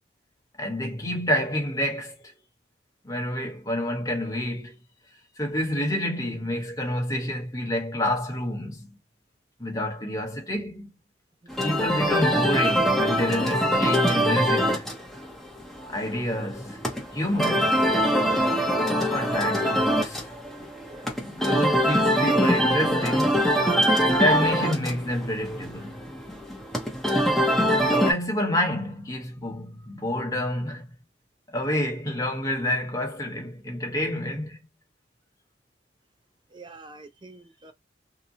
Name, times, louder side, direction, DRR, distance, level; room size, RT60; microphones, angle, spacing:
voice 1, 0.6-2.1 3.0-4.7 5.4-9.0 9.6-10.9 11.6-14.9 15.9-16.8 17.1-17.9 19.1-20.3 21.2-23.5 24.0-26.0 27.9-30.9 31.5-34.6, left 1 dB, 20° left, 1.1 m, -28 dB
voice 2, 11.4-11.8 20.6-21.2 36.5-37.7, right 3 dB, 25° right, 0.5 m, -47 dB
sound 1, 11.5-28.1, equal, ahead, 0.8 m, -24 dB
2.9 x 2.2 x 2.6 m
head